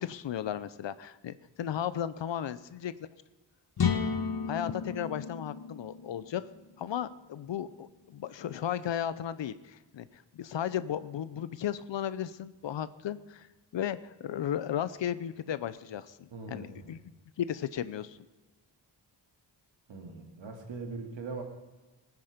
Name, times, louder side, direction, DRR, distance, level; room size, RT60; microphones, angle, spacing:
voice 1, 0.0-2.9 4.5-6.4 6.8-13.5 13.7-17.0 17.4-18.2, left 10 dB, 80° left, 15 dB, 0.7 m, -35 dB
sound 1, 3.8-7.5, left 6 dB, 55° left, 1.4 m, -33 dB
voice 2, 16.3-17.0 19.9-21.4, right 3 dB, 85° right, 3 dB, 2.6 m, -41 dB
19.5 x 9.7 x 5.1 m, 1.2 s
wide cardioid pair, 140°, 43 cm